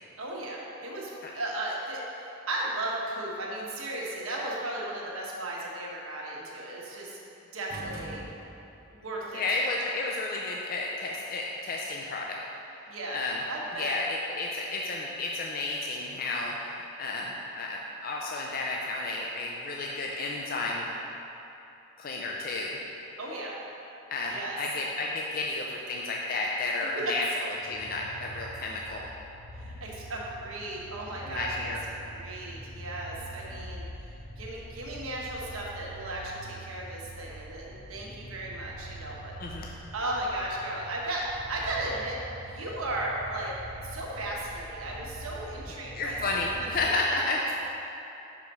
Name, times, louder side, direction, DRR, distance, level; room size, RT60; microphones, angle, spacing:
voice 1, 0.2-7.2 7.5-8.2 8.9-9.4 12.9-13.2 13.5-14.0 23.2-23.5 24.3-24.6 26.9-27.1 29.5-31.7 32.0-33.8 34.4-39.3 39.9-42.2 42.4-43.5 43.8-47.2, right 1 dB, 85° right, -3 dB, 1.2 m, -35 dB
sound 1, 7.7-8.9, right 2 dB, 45° right, 0.7 m, -43 dB
voice 2, 9.3-12.4 13.1-13.4 13.8-20.9 22.0-22.8 24.1-29.1 31.3-31.8 39.4-39.7 46.0-47.5, left 2 dB, 45° left, -2 dB, 0.4 m, -32 dB
sound 2, 27.5-46.9, right 1 dB, 80° left, 1.2 m, -44 dB
5.7 x 4.9 x 5.3 m, 2.9 s
head